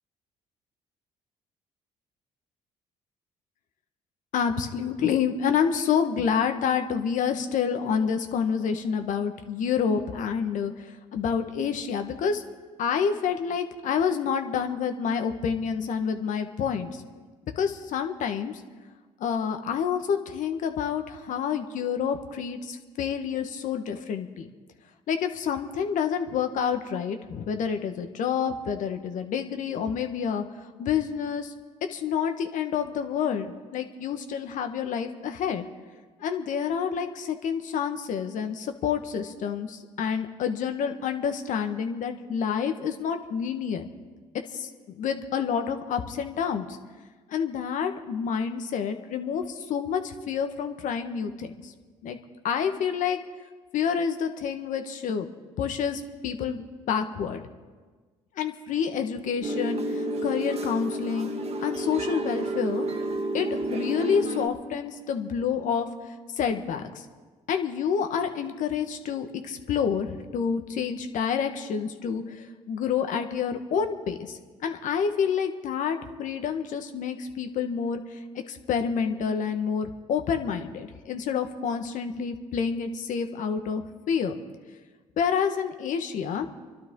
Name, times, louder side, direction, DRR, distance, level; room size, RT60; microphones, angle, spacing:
voice 1, 4.3-12.5 12.8-17.0 17.6-18.6 19.2-24.5 25.1-30.4 30.8-31.5 31.9-35.7 36.2-43.9 44.5-46.8 47.3-51.7 52.0-52.2 52.4-53.2 53.7-55.3 55.6-57.4 58.4-61.3 61.6-62.9 63.3-67.0 67.5-78.2 78.5-84.4 85.2-86.5, left 7 dB, 70° left, 6 dB, 1.4 m, -28 dB
sound 1, 59.4-64.5, right 1 dB, 50° right, 1.6 m, -30 dB
30.0 x 12.0 x 3.9 m, 1.4 s
supercardioid pair, 70°, 14 cm